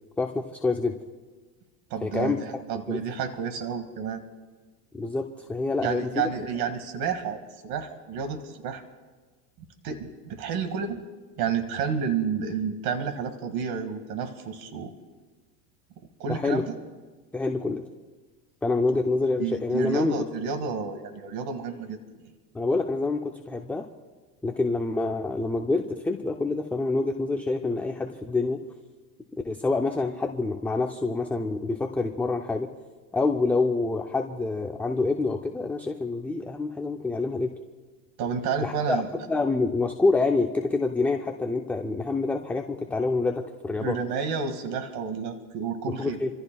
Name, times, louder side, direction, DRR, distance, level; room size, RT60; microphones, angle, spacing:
voice 1, 0.2-1.0 2.0-2.4 2.9-3.0 4.9-6.3 16.3-16.6 17.3-17.8 18.6-20.2 22.5-23.9 24.4-28.6 29.4-32.7 33.1-37.5 38.6-39.0 39.3-44.0 45.9-46.3, left 3 dB, 5° left, 3 dB, 0.3 m, -27 dB
voice 2, 1.9-4.2 5.8-8.8 9.8-11.0 11.4-14.9 16.0-16.7 19.4-22.0 38.2-39.1 43.8-46.2, right 6 dB, 50° right, 7 dB, 2.0 m, -30 dB
29.0 x 14.5 x 2.3 m, 1.3 s
supercardioid pair, 120°, 47 cm